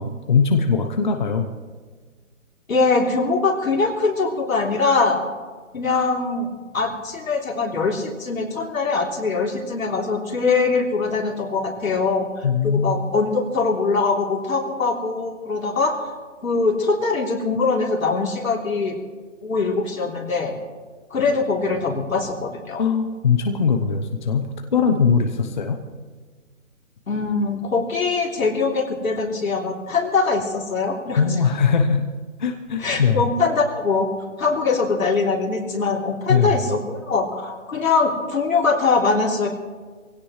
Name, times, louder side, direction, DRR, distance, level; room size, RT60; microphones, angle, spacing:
voice 1, 0.0-1.5 12.4-13.0 22.8-25.8 31.2-32.0 32.4-33.3 36.3-36.6, left 5 dB, 35° left, 5 dB, 0.8 m, -20 dB
voice 2, 2.7-5.2 5.7-6.5 6.7-16.1 16.4-18.9 19.4-20.5 21.1-22.8 27.1-31.2 32.8-34.1 34.4-39.5, left 4 dB, 80° left, 0 dB, 3.4 m, -22 dB
22.0 x 17.0 x 3.2 m, 1.5 s
hypercardioid pair, 170°, 40 cm